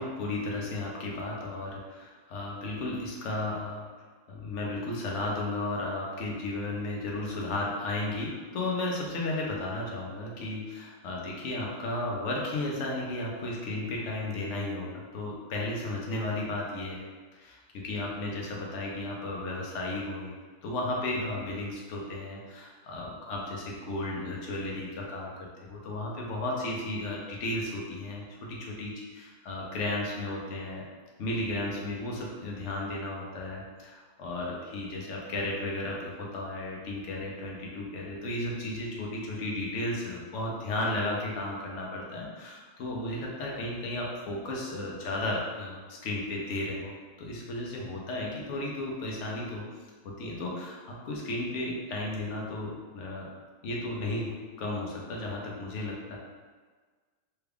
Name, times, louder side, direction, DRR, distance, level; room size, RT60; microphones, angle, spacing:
voice 1, 0.0-3.9 4.3-17.1 17.3-20.3 20.6-30.8 31.2-49.6 50.0-53.3 53.6-56.2, left 2 dB, 60° left, -2 dB, 0.9 m, -34 dB
3.4 x 2.3 x 3.4 m, 1.5 s
omnidirectional pair, 1.6 m